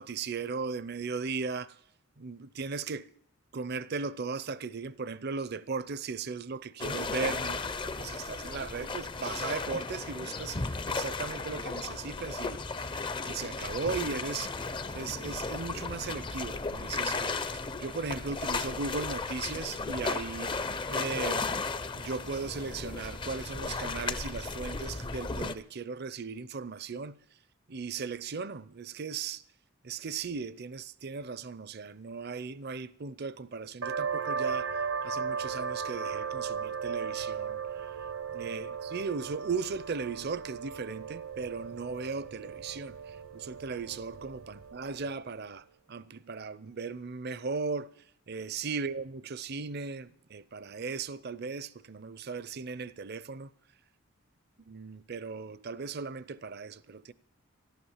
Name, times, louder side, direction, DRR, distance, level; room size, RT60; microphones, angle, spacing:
voice 1, 0.0-1.8 2.2-3.1 3.5-12.9 13.2-14.5 14.9-20.6 20.9-21.6 22.0-27.2 27.7-29.4 29.8-34.8 35.0-38.0 38.3-47.9 48.3-53.5 54.7-57.1, right 5 dB, 45° right, 0.6 m, -37 dB
sound 1, 6.8-25.5, left 3 dB, 20° left, 0.5 m, -35 dB
sound 2, 33.8-45.1, right 6 dB, 75° right, 0.9 m, -36 dB
14.0 x 12.0 x 7.2 m
head